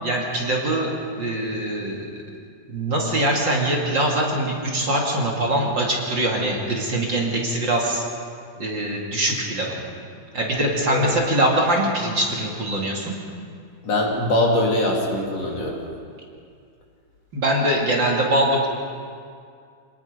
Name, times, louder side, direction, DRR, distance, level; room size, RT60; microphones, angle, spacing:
voice 1, 0.0-2.1 2.7-8.0 8.6-9.8 10.3-13.1 17.3-18.7, right 1 dB, 40° right, -2 dB, 2.8 m, -23 dB
voice 2, 13.8-15.8, left 1 dB, 60° left, -2 dB, 4.0 m, -22 dB
26.5 x 19.0 x 5.3 m, 2.3 s
omnidirectional pair, 3.3 m